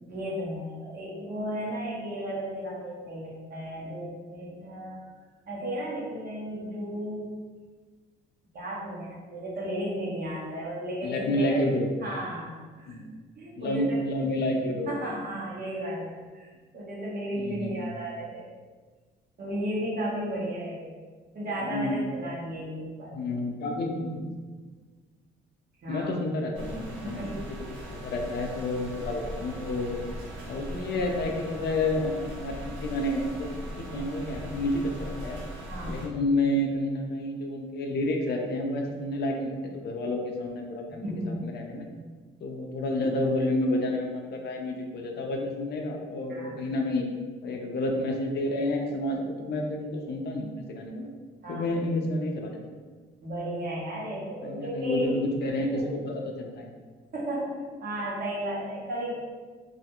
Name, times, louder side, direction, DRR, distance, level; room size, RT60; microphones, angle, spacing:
voice 1, 0.1-5.0 5.5-7.3 8.5-11.6 12.0-13.0 13.4-13.8 14.9-16.5 16.7-18.5 19.4-20.9 21.3-23.3 25.8-26.1 27.0-27.3 35.7-36.1 41.0-41.4 46.3-46.6 51.4-51.7 53.2-55.2 55.6-55.9 57.1-59.1, right 1 dB, 50° right, -5 dB, 0.9 m, -34 dB
voice 2, 11.0-11.9 12.9-13.1 13.6-15.0 17.4-17.8 21.6-22.0 23.1-24.3 25.9-30.0 30.5-33.5 33.8-35.4 35.9-41.1 41.4-41.9 42.4-47.1 47.4-51.1 51.5-52.6 54.4-56.8, left 1 dB, 55° left, 2 dB, 0.4 m, -30 dB
sound 1, 26.5-36.1, equal, 75° right, 0.6 m, -39 dB
2.4 x 2.2 x 2.8 m, 1.4 s
cardioid pair, 90°, 20 cm